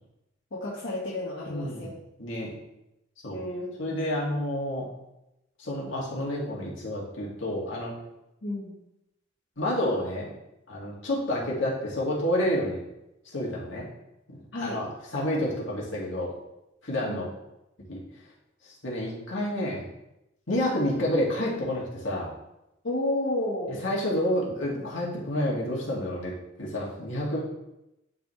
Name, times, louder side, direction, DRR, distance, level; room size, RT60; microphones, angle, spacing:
voice 1, 0.5-1.9 3.3-4.0 8.4-8.7 14.5-14.8 17.0-17.2 22.8-23.8, left 1 dB, 70° left, -6 dB, 1.3 m, -31 dB
voice 2, 1.5-2.5 3.2-3.4 3.8-4.9 5.6-7.9 9.6-10.3 10.7-12.8 13.3-13.9 14.3-16.3 16.8-17.3 17.9-18.0 18.8-19.9 20.5-22.3 23.7-26.3 26.6-27.4, left 1 dB, 90° left, -5 dB, 2.1 m, -29 dB
10.5 x 4.1 x 3.2 m, 0.88 s
head